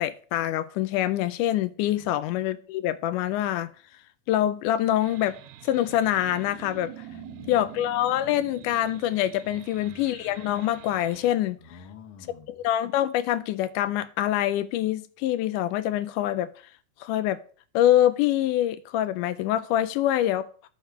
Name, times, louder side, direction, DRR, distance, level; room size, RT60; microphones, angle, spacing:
voice 1, 0.0-3.7 4.3-5.4 5.6-6.9 7.5-11.6 12.5-16.5 17.0-17.4 17.7-20.5, left 12 dB, 85° left, 2.1 m, -25 dB
sound 1, 5.0-11.3, right 14 dB, 80° right, 1.9 m, -45 dB
voice 2, 7.0-7.7 9.4-10.0 11.6-12.5, left 6 dB, 55° left, 1.6 m, -48 dB
11.0 x 4.9 x 4.8 m
omnidirectional pair, 3.6 m